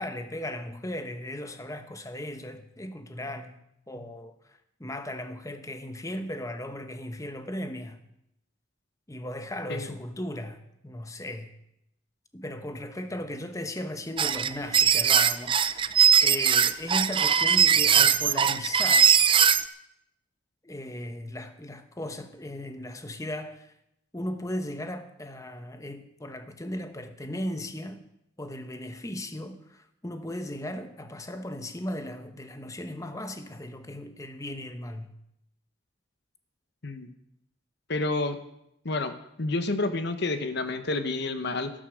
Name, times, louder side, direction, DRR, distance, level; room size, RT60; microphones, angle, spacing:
voice 1, 0.0-3.6 3.9-8.0 9.1-11.5 12.3-19.1 20.6-23.7 24.1-28.0 28.4-35.1, left 1 dB, 15° left, 1.0 m, -37 dB
sound 1, 14.2-19.6, right 8 dB, 25° right, 0.4 m, -20 dB
voice 2, 37.9-38.4 38.8-39.1 39.4-41.7, left 2 dB, 55° left, 1.0 m, -29 dB
12.5 x 11.5 x 6.3 m
head